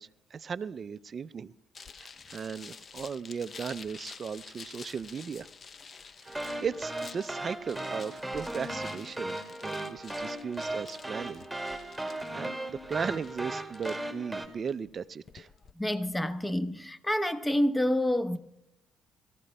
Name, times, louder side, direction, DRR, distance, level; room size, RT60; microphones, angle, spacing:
voice 1, 0.0-1.5 2.0-5.5 6.2-11.4 11.8-15.5, right 6 dB, 50° right, 0.4 m, -37 dB
sound 1, 1.7-15.7, left 5 dB, 45° left, 0.6 m, -50 dB
sound 2, 6.3-14.5, right 1 dB, 5° right, 2.3 m, -37 dB
voice 2, 15.8-18.4, left 1 dB, 15° left, 1.0 m, -28 dB
23.0 x 15.0 x 2.2 m
hypercardioid pair, 55°, 0 cm